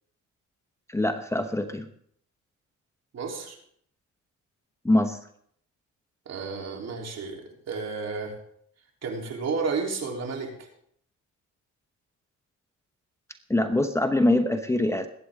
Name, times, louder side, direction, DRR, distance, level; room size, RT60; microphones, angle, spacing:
voice 1, 0.9-1.9 4.8-5.2 13.5-15.1, left 1 dB, 10° left, 7 dB, 1.0 m, -23 dB
voice 2, 3.1-3.6 6.3-8.3 9.0-10.7, right 4 dB, 60° right, 1 dB, 3.5 m, -32 dB
21.5 x 8.7 x 3.7 m, 0.66 s
cardioid pair, 90°, 30 cm